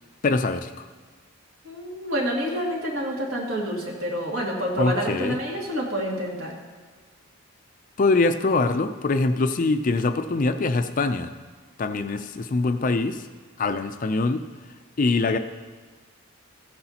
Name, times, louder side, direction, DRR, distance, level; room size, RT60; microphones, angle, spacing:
voice 1, 0.2-0.9 4.8-5.4 8.0-11.3 11.8-13.3 13.6-14.4 15.0-15.4, left 3 dB, 40° left, 9 dB, 0.4 m, -23 dB
voice 2, 1.6-6.5, equal, 60° right, -2 dB, 2.3 m, -28 dB
15.5 x 9.6 x 2.9 m, 1.5 s
head